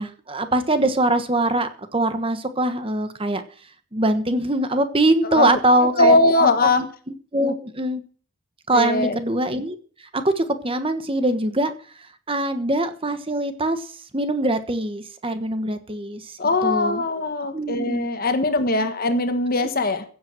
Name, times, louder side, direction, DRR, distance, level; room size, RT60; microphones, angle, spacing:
voice 1, 0.0-3.4 3.9-6.5 6.8-6.9 7.3-8.0 8.7-11.7 12.0-17.0 17.5-18.0 19.6-19.7, right 1 dB, 25° right, 1.2 m, -23 dB
voice 2, 5.2-5.6 6.0-6.8 7.4-7.5 8.7-9.2 16.4-20.0, left 2 dB, 40° left, 1.4 m, -20 dB
15.5 x 7.9 x 6.2 m
head